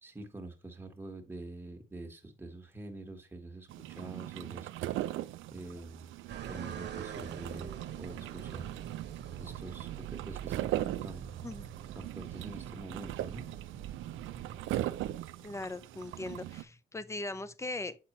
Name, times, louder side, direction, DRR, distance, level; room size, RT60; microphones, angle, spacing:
voice 1, 0.0-4.9 5.5-6.1 6.5-8.7 9.4-11.4 12.0-13.5, right 2 dB, 10° right, 1.5 m, -46 dB
sound 1, 3.7-16.6, right 14 dB, 80° right, 0.4 m, -40 dB
sound 2, 6.3-15.2, right 8 dB, 60° right, 1.0 m, -45 dB
voice 2, 15.4-18.0, left 2 dB, 15° left, 0.5 m, -39 dB
7.6 x 4.2 x 3.1 m
cardioid pair, 90°, 20 cm